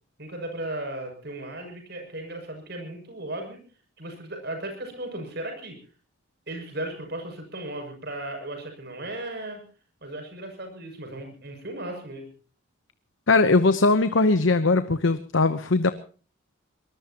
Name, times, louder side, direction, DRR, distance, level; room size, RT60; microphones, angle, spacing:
voice 1, 0.2-3.6 4.0-5.8 6.5-9.6 10.0-12.3, right 1 dB, 55° right, 4 dB, 7.1 m, -36 dB
voice 2, 13.3-15.9, left 3 dB, 70° left, 11 dB, 0.9 m, -20 dB
23.5 x 20.0 x 3.0 m, 0.40 s
head